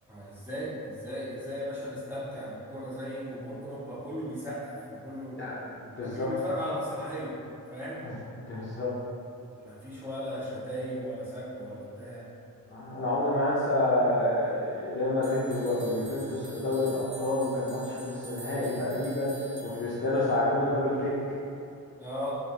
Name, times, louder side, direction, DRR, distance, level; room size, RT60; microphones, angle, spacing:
voice 1, 0.1-5.4 6.0-7.4 7.7-8.0 9.6-12.3 22.0-22.3, equal, 5° right, -11 dB, 1.1 m, -36 dB
voice 2, 5.4-6.3 8.0-8.1 8.5-8.9 12.7-21.1, left 1 dB, 35° left, -9 dB, 0.5 m, -28 dB
sound 1, 15.2-20.5, right 3 dB, 90° right, 0.6 m, -49 dB
5.2 x 2.1 x 3.1 m, 2.5 s
wide cardioid pair, 165°, 34 cm